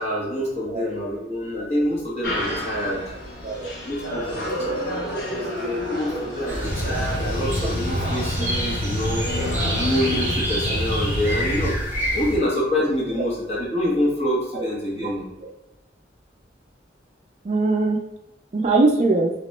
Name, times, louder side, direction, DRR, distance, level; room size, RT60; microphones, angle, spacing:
voice 1, 0.0-3.0 3.8-9.2 9.8-11.7 12.1-15.3, left 1 dB, 35° left, -4 dB, 1.0 m, -26 dB
sound 1, 2.2-10.3, equal, 90° left, 1.2 m, -31 dB
sound 2, 6.5-12.4, equal, 10° right, 0.9 m, -28 dB
sound 3, 6.6-11.7, equal, 60° left, 0.6 m, -28 dB
voice 2, 17.4-18.0 18.5-19.3, right 3 dB, 40° right, 2 dB, 0.3 m, -22 dB
3.0 x 2.9 x 3.1 m, 0.97 s
head